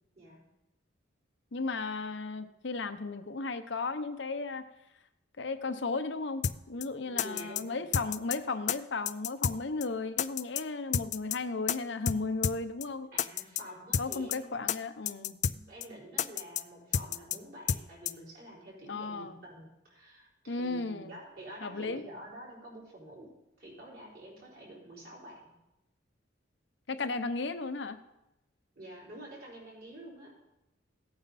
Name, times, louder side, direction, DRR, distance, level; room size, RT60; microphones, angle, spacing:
voice 1, 1.5-4.7 5.4-13.1 14.0-15.4 18.9-19.4 20.5-21.2 21.6-22.0 26.9-28.0, left 3 dB, 65° left, 10 dB, 0.8 m, -35 dB
sound 1, 6.4-6.6 6.8-6.9 7.2-7.6 7.9-8.4 8.7-8.8 9.1-9.6 9.8-9.9 10.2-10.6 10.9-11.4 11.7-11.8 12.1-12.2 12.4-12.6 12.8-12.9 13.2-13.6 13.9-14.4 14.7-14.8 15.1-15.6 15.8-15.9 16.2-16.6 16.9-17.4 17.7-17.8 18.1-18.2, left 8 dB, 40° left, 0.3 m, -30 dB
voice 2, 7.0-8.0 13.1-14.7 15.5-25.5 28.7-30.3, right 1 dB, 50° right, -4 dB, 4.8 m, -48 dB
15.5 x 8.9 x 4.2 m, 0.91 s
head